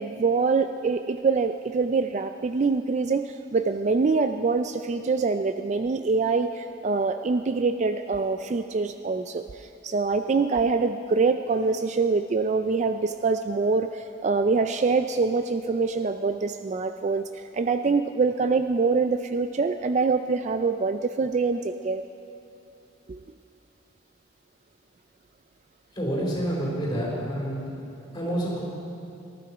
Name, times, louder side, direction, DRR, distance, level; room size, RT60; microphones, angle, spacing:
voice 1, 0.0-22.0 23.1-23.2, right 4 dB, 35° right, 8 dB, 0.3 m, -25 dB
voice 2, 25.9-27.6 28.1-28.6, right 1 dB, 20° left, -5 dB, 4.1 m, -28 dB
19.0 x 12.0 x 4.9 m, 2.8 s
head